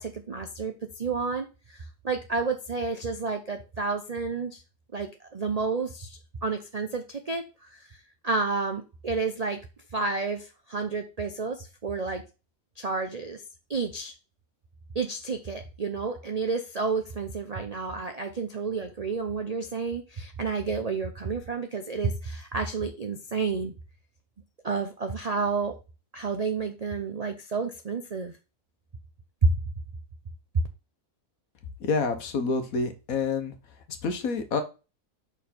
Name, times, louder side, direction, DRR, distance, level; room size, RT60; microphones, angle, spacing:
voice 1, 0.0-4.6 4.9-8.0 8.2-9.6 9.9-12.2 12.8-13.4 13.7-14.1 14.9-23.7 24.6-25.8 26.1-28.4 29.4-29.5, right 4 dB, 50° right, 6 dB, 0.4 m, -30 dB
voice 2, 31.8-33.5 34.0-34.6, left 4 dB, 65° left, 7 dB, 1.4 m, -28 dB
5.6 x 4.5 x 4.3 m, 0.30 s
omnidirectional pair, 1.6 m